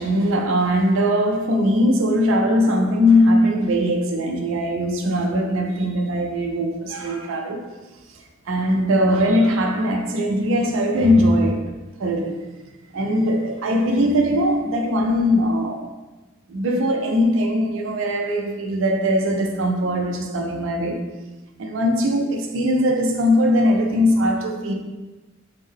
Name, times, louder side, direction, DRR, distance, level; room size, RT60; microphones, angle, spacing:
voice 1, 0.0-7.7 8.1-11.6 12.0-12.5 12.9-15.8 16.5-21.0 21.6-24.7, equal, 70° right, 0.4 m, -20 dB
3.6 x 2.0 x 3.5 m
head